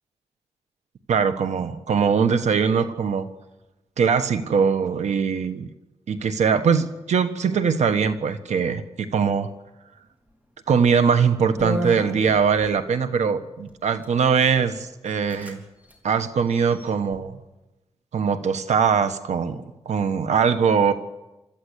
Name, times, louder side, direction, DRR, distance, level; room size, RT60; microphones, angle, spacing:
voice 1, 1.1-3.3 4.0-5.7 6.1-9.5 10.7-15.6 16.0-17.4 18.1-20.9, right 6 dB, 85° right, 9 dB, 1.4 m, -21 dB
sound 1, 10.8-11.0 11.6-12.7 13.7-14.1 14.7-14.8 15.1-15.6 15.8-16.0 16.5-17.2, equal, 15° right, 3.8 m, -33 dB
26.0 x 13.5 x 8.2 m, 1.0 s
wide cardioid pair, 110°, 12 cm